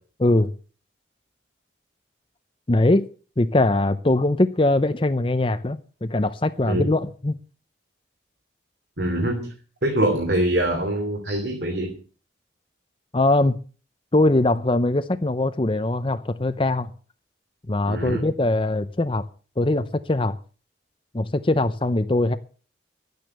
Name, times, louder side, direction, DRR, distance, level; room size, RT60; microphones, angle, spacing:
voice 1, 0.2-0.5 2.7-3.1 3.4-7.4 13.1-13.6 14.1-16.9 17.7-19.3 19.6-20.4 21.1-22.4, left 2 dB, 30° left, 0.6 m, -21 dB
voice 2, 9.0-9.5 9.8-11.9 17.9-18.3, right 1 dB, 65° right, 3.0 m, -24 dB
12.0 x 9.3 x 7.9 m
head